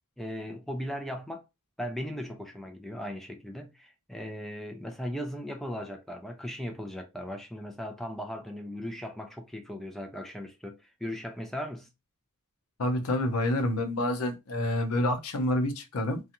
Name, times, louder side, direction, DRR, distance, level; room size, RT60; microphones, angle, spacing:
voice 1, 0.2-1.5 1.8-11.9, equal, ahead, 0.4 m, -38 dB
voice 2, 12.8-16.2, left 1 dB, 80° left, 0.6 m, -28 dB
2.5 x 2.3 x 2.8 m
head